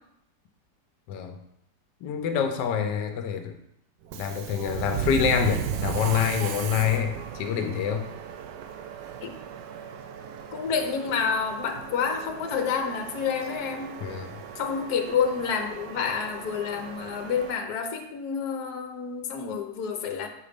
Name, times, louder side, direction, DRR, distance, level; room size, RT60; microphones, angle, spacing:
voice 1, 2.0-3.6 4.1-8.0 14.0-14.3, left 7 dB, 90° left, 6 dB, 1.3 m, -26 dB
Subway metro underground, 4.0-17.5, right 8 dB, 85° right, 1.2 m, -36 dB
voice 2, 10.5-13.9 14.5-20.3, left 6 dB, 70° left, 5 dB, 1.3 m, -29 dB
7.5 x 3.9 x 5.1 m, 0.81 s
omnidirectional pair, 1.8 m